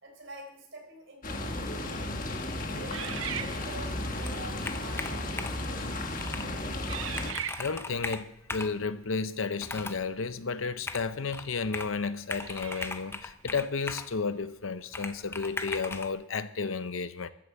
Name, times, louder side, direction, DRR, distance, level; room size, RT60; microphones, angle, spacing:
voice 1, 0.0-2.1 2.6-6.0, right 2 dB, 65° right, 4.2 m, -47 dB
sound 1, 1.2-7.3, left 1 dB, 40° left, 1.3 m, -34 dB
sound 2, 2.9-4.1 4.9-5.1 5.8-6.1 6.9-8.0 10.7-10.8 12.3-13.2, right 10 dB, 80° right, 0.6 m, -39 dB
Computer keyboard, 4.2-5.7 6.2-6.5 6.9-7.0 7.1-8.8 9.6-10.1 10.9-12.0 12.3-14.1 14.9-16.1, left 3 dB, 10° left, 0.5 m, -38 dB
voice 2, 7.5-17.3, left 4 dB, 80° left, 0.7 m, -32 dB
13.5 x 7.8 x 7.1 m
head